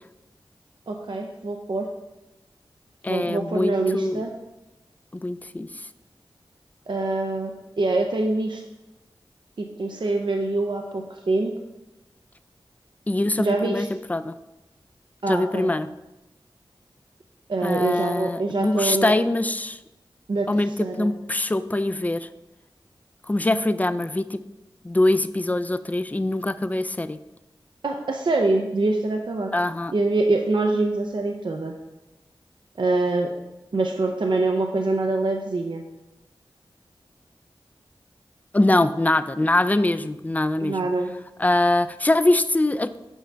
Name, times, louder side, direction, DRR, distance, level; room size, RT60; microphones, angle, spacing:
voice 1, 0.9-1.9 3.1-4.3 6.9-7.5 7.8-8.6 9.6-11.5 13.4-13.9 15.2-15.7 17.5-19.1 20.3-21.1 27.8-29.5 29.9-31.7 32.8-33.3 33.7-35.8 40.6-41.1, right 2 dB, 60° right, 3 dB, 0.5 m, -24 dB
voice 2, 3.0-4.3 5.2-5.9 13.1-14.3 15.3-15.9 17.6-19.8 20.5-22.3 23.3-24.4 24.8-27.2 29.5-29.9 38.5-40.8 41.4-43.0, left 2 dB, 15° left, 13 dB, 0.3 m, -23 dB
7.2 x 5.5 x 3.4 m, 1.0 s
cardioid pair, 40°, 9 cm